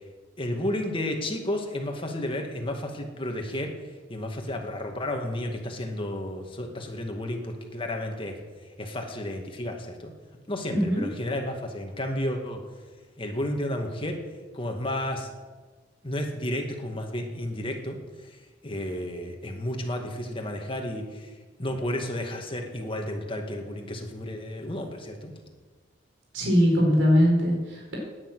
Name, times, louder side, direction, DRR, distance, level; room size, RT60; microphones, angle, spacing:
voice 1, 0.4-8.4 8.8-10.1 10.5-12.6 13.2-14.2 14.5-15.3 16.0-25.3, left 1 dB, 25° left, 3 dB, 2.2 m, -32 dB
voice 2, 10.7-11.0 26.3-28.0, equal, 85° right, -1 dB, 4.7 m, -21 dB
18.0 x 10.0 x 6.4 m, 1.4 s
head